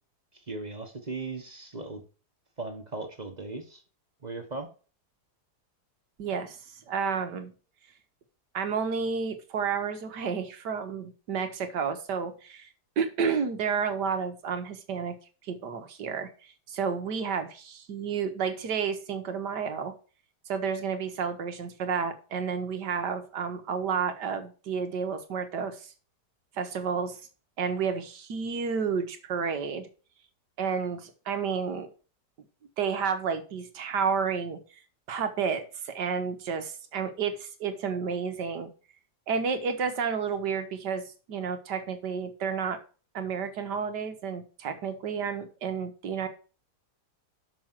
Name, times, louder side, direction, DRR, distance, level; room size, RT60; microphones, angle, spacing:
voice 1, 0.5-2.0 2.6-3.8 4.2-4.7, right 3 dB, 30° right, 5 dB, 1.1 m, -37 dB
voice 2, 6.2-6.6 6.9-7.5 8.5-12.7 13.0-15.2 15.4-16.3 16.7-19.9 20.5-25.9 26.6-27.2 27.6-29.9 30.6-31.9 32.8-34.6 35.1-38.7 39.3-42.8 43.1-46.3, right 6 dB, 90° right, 8 dB, 1.8 m, -31 dB
6.3 x 6.2 x 7.3 m, 0.37 s
omnidirectional pair, 1.8 m